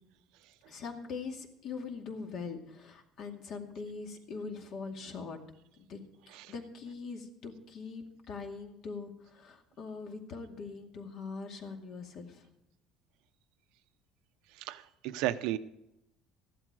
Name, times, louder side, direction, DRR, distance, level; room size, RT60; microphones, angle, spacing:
voice 1, 0.7-5.4 5.8-6.0 6.3-12.5, left 4 dB, 45° left, 4 dB, 2.2 m, -42 dB
voice 2, 14.6-15.6, right 14 dB, 70° right, 11 dB, 0.8 m, -34 dB
15.0 x 11.5 x 4.9 m, 0.84 s
cardioid pair, 175°, 0 cm